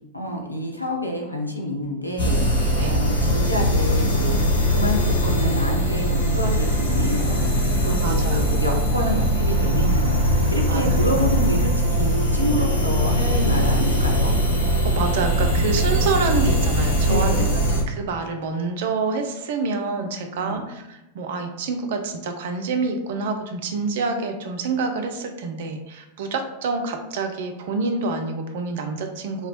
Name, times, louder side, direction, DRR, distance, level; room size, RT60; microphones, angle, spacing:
voice 1, 0.1-11.7 12.0-14.3 17.1-17.5 20.3-20.6, equal, 90° left, -1 dB, 0.5 m, -28 dB
sound 1, 2.2-17.8, equal, 65° left, 1.0 m, -21 dB
voice 2, 8.0-8.4 10.7-10.8 14.8-17.5 17.9-29.5, right 4 dB, 55° right, 5 dB, 0.4 m, -27 dB
2.9 x 2.1 x 2.8 m, 0.98 s
figure-of-eight pair, 90°, 0 cm